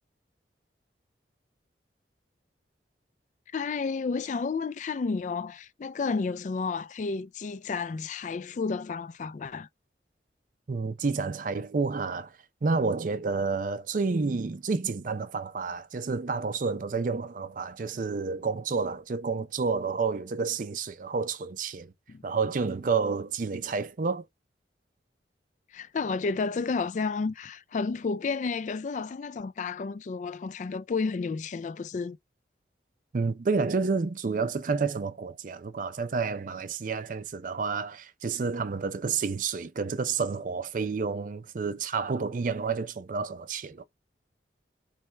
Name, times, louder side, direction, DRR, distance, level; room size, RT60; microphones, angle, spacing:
voice 1, 3.5-9.7 22.1-22.2 25.7-32.2, left 4 dB, 45° left, 0.3 m, -31 dB
voice 2, 10.7-12.3 12.6-21.9 22.2-24.3 33.1-43.8, right 4 dB, 50° right, 0.4 m, -30 dB
4.4 x 3.2 x 3.3 m
head